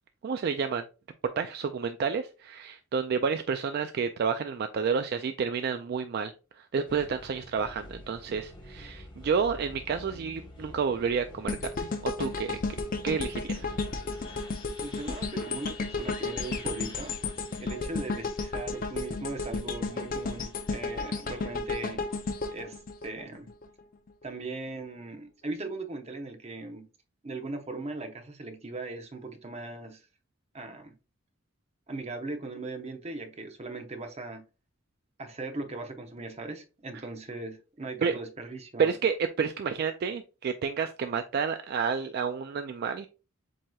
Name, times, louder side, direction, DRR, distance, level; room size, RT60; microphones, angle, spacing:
voice 1, 0.2-0.8 1.4-6.3 6.7-12.6 13.0-13.7 38.0-38.1 38.8-43.1, right 6 dB, 50° right, 0.3 m, -30 dB
sound 1, 6.8-22.4, left 1 dB, 25° left, 1.2 m, -49 dB
sound 2, 11.5-23.6 24.1-24.2, left 3 dB, 45° left, 0.6 m, -33 dB
voice 2, 14.8-17.1 17.6-22.1 22.5-23.5 24.2-26.9 27.2-30.1 30.5-31.0 31.9-34.5 35.2-38.9, right 2 dB, 30° right, 0.7 m, -39 dB
7.6 x 2.9 x 2.3 m
head